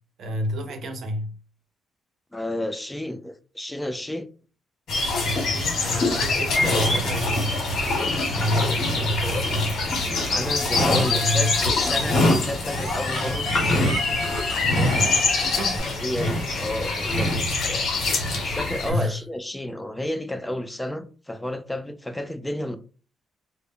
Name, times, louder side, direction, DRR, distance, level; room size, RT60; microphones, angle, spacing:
voice 1, 0.2-1.3 5.3-7.5 8.3-9.7 10.9-11.6 14.7-15.8 18.9-19.2, equal, 60° right, 0.5 m, -29 dB
voice 2, 2.3-4.3 5.0-5.1 8.8-9.1 10.3-13.5 16.0-17.9 18.4-22.8, left 1 dB, 10° left, 0.3 m, -31 dB
sound 1, 4.9-18.9, left 2 dB, 65° left, 1.0 m, -24 dB
sound 2, 10.6-12.4 12.7-15.8, left 2 dB, 35° left, 0.7 m, -34 dB
2.1 x 2.0 x 3.5 m
cardioid pair, 90°, 0 cm